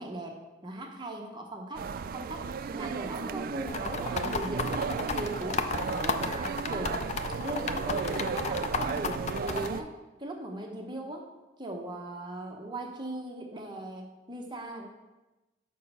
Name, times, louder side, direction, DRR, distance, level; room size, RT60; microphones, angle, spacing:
voice 1, 0.0-1.9 2.1-5.7 6.0-7.0 7.4-9.9 10.2-11.3 11.6-14.9, right 1 dB, 25° right, 1 dB, 0.8 m, -39 dB
sound 1, 1.7-9.8, right 5 dB, 50° right, 0.3 m, -34 dB
sound 2, 3.7-9.7, left 5 dB, 40° left, 0.4 m, -32 dB
6.5 x 5.7 x 5.5 m, 1.1 s
head